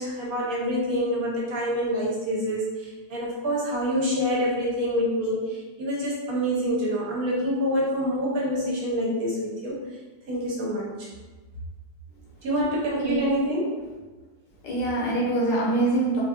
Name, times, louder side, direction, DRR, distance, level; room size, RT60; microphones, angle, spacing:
voice 1, 0.0-9.8 10.3-11.1 12.4-13.7, equal, 60° right, -4 dB, 1.2 m, -26 dB
voice 2, 14.6-16.2, right 2 dB, 75° left, -4 dB, 1.5 m, -24 dB
4.1 x 2.6 x 2.3 m, 1.2 s
omnidirectional pair, 1.9 m